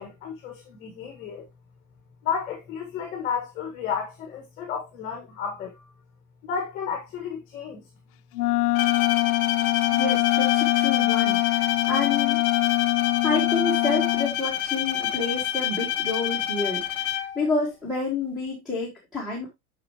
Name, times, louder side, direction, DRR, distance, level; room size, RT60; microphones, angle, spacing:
voice 1, 0.0-1.4 2.2-5.8 6.4-7.8 13.0-13.2, left 7 dB, 20° left, 1.3 m, -32 dB
Wind instrument woodwind instrument, 8.3-14.4, left 18 dB, 85° left, 0.6 m, -23 dB
Bowed string instrument, 8.7-17.5, left 12 dB, 40° left, 0.6 m, -28 dB
voice 2, 9.9-12.4 13.2-17.1 17.3-19.5, left 3 dB, ahead, 1.3 m, -29 dB
8.0 x 5.7 x 2.8 m
supercardioid pair, 180°, 45 cm